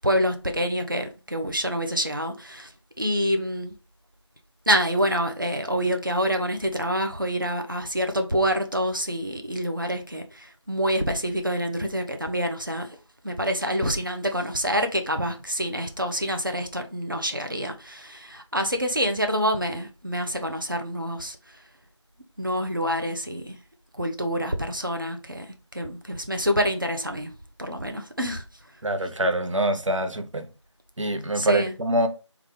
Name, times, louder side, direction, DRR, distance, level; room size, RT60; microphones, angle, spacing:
voice 1, 0.0-2.7 3.0-3.8 4.7-13.0 13.2-21.6 22.4-23.6 23.9-25.5 25.7-27.3 27.6-28.4 31.3-31.8, equal, 45° right, 0.5 m, -27 dB
voice 2, 28.8-30.5 31.0-32.1, right 1 dB, 90° right, 0.6 m, -25 dB
3.4 x 2.3 x 3.1 m
figure-of-eight pair, 175°, 16 cm